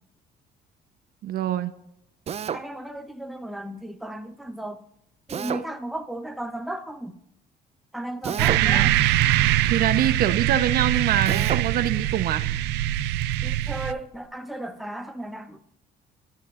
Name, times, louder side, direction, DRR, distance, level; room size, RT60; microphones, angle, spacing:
voice 1, 1.2-1.7 8.5-9.0 9.7-12.5, right 10 dB, 65° right, 0.8 m, -24 dB
Drill, 2.3-2.7 5.3-5.7 8.2-8.7 11.2-11.7, right 8 dB, 40° right, 0.6 m, -30 dB
voice 2, 2.5-4.8 5.3-7.2 7.9-9.0 13.4-15.6, right 1 dB, ahead, 0.8 m, -35 dB
sound 1, 8.4-13.9, right 13 dB, 90° right, 0.5 m, -23 dB
23.5 x 12.5 x 2.5 m
cardioid pair, 110°, 17 cm